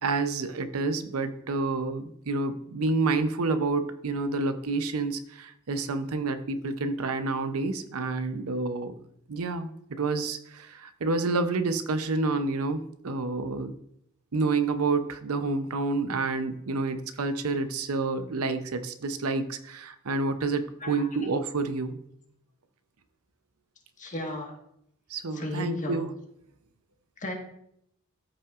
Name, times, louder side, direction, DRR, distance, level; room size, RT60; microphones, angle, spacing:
voice 1, 0.0-8.9 9.3-13.7 14.3-22.0 25.1-26.1, right 3 dB, 75° right, 9 dB, 0.7 m, -29 dB
voice 2, 24.0-24.5 25.3-26.0 27.2-27.3, left 1 dB, 35° left, 1 dB, 1.5 m, -34 dB
13.5 x 5.6 x 2.5 m, 0.72 s
head